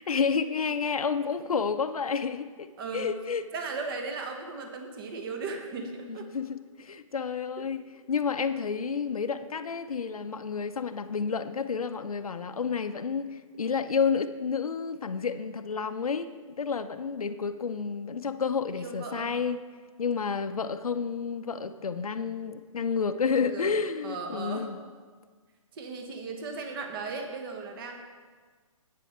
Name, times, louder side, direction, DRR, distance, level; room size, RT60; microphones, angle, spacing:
voice 1, 0.0-2.7 2.9-3.4 6.1-7.8 8.1-16.3 16.6-19.6 20.0-24.8, left 5 dB, 90° left, 9 dB, 0.7 m, -30 dB
voice 2, 2.8-3.1 3.5-6.3 7.6-7.7 18.7-19.4 23.3-23.8 24.0-24.7 25.7-28.0, right 4 dB, 40° right, 4 dB, 1.3 m, -37 dB
10.0 x 8.8 x 4.3 m, 1.5 s
hypercardioid pair, 150°, 18 cm